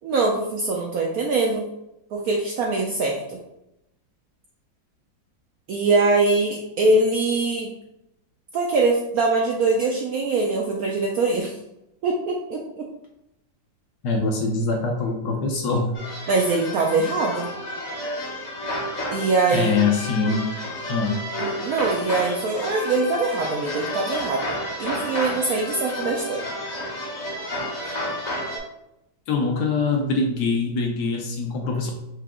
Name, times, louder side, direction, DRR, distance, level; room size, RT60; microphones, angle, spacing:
voice 1, 0.0-1.7 2.1-3.4 5.7-7.7 8.5-11.5 12.0-12.9 16.3-17.5 19.1-19.7 21.4-26.4, right 3 dB, 70° right, -1 dB, 0.8 m, -23 dB
voice 2, 14.0-15.9 19.5-20.5 20.9-21.2 29.3-31.9, left 4 dB, 65° left, 2 dB, 1.2 m, -23 dB
sound 1, 15.9-28.6, left 1 dB, 40° left, 0.6 m, -31 dB
4.8 x 2.8 x 3.5 m, 0.86 s
omnidirectional pair, 2.1 m